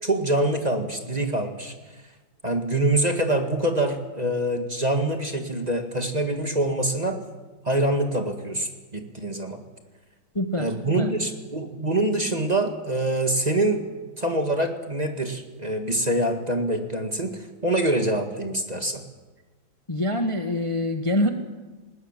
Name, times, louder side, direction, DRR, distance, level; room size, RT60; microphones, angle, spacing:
voice 1, 0.0-1.7 2.4-7.2 7.7-9.6 10.6-13.8 14.2-19.0, right 1 dB, 20° right, 5 dB, 2.0 m, -25 dB
voice 2, 10.3-11.1 19.9-21.3, left 1 dB, 15° left, 5 dB, 1.4 m, -25 dB
20.5 x 19.5 x 9.1 m, 1.3 s
omnidirectional pair, 2.2 m